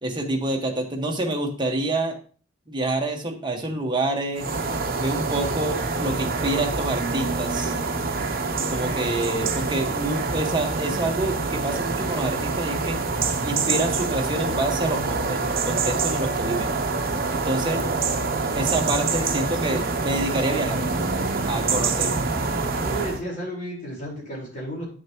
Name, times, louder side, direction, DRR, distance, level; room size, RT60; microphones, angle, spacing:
voice 1, 0.0-2.2 2.7-4.5 5.0-7.7 8.7-13.0 13.4-16.7 17.3-17.8 18.5-20.8 21.4-22.1, right 2 dB, 25° right, 1 dB, 1.5 m, -27 dB
sound 1, 4.4-23.2, right 3 dB, 50° right, 1.0 m, -26 dB
voice 2, 22.8-24.8, right 1 dB, 45° left, -4 dB, 4.5 m, -33 dB
9.4 x 7.2 x 3.0 m, 0.39 s
head